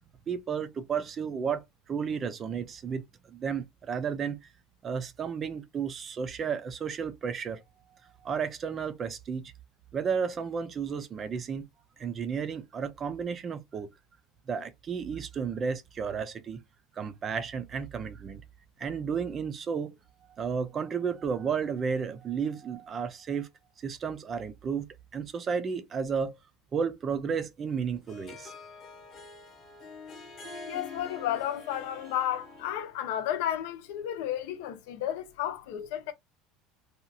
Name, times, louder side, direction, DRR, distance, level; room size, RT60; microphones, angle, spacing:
voice 1, 0.3-4.4 4.8-7.6 7.9-9.5 9.9-11.7 12.0-13.9 14.5-16.6 16.9-18.4 18.8-19.9 20.2-23.5 23.8-24.9 25.1-26.4 26.7-28.5, right 6 dB, 25° right, 0.4 m, -33 dB
Harp, 27.7-33.0, left 3 dB, 25° left, 0.9 m, -46 dB
voice 2, 30.7-36.1, left 11 dB, 70° left, 0.6 m, -32 dB
2.8 x 2.4 x 2.6 m
cardioid pair, 160°, 0 cm